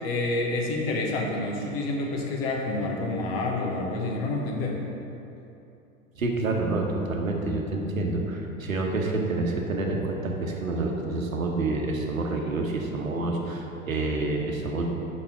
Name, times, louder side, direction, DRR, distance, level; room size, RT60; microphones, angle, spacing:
voice 1, 0.0-4.8, left 2 dB, 45° left, 0 dB, 1.2 m, -28 dB
voice 2, 6.2-14.9, right 2 dB, 75° right, 1 dB, 1.1 m, -28 dB
6.2 x 5.6 x 4.5 m, 2.8 s
figure-of-eight pair, 90°, 41 cm